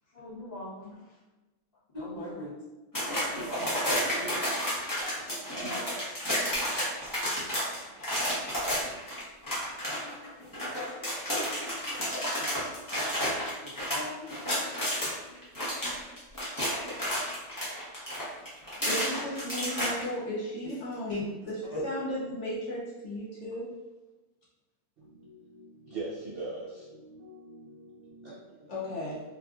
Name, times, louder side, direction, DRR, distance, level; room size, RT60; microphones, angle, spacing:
voice 1, 0.1-0.9 1.9-2.5 12.4-12.5 13.0-13.1 13.6-14.3 14.6-14.7 15.3-15.4 21.1-21.2 21.7-21.8, left 2 dB, 40° left, -9 dB, 1.2 m, -38 dB
sound 1, 2.9-15.1 15.4-20.0, equal, 20° left, 0.7 m, -31 dB
voice 2, 18.4-23.7 28.7-29.2, equal, 65° left, -6 dB, 0.8 m, -35 dB
voice 3, 25.0-29.2, right 2 dB, 60° right, -8 dB, 0.6 m, -43 dB
3.4 x 2.5 x 2.3 m, 1.1 s
omnidirectional pair, 1.5 m